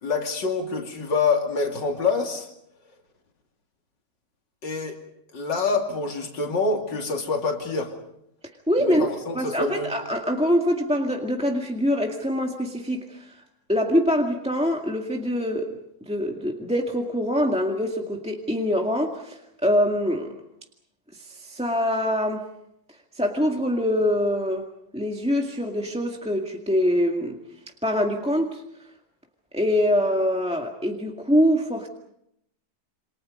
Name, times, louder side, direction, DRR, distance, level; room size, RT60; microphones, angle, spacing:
voice 1, 0.0-2.5 4.6-5.0 5.3-7.9 8.8-9.9, left 4 dB, 75° left, 2 dB, 3.3 m, -26 dB
voice 2, 8.7-9.1 9.3-13.3 13.7-15.7 16.0-20.3 21.2-22.4 23.1-24.7 24.9-27.4 27.8-28.6 29.5-31.9, equal, 5° right, 1 dB, 1.8 m, -24 dB
28.5 x 27.0 x 5.3 m, 0.77 s
omnidirectional pair, 2.0 m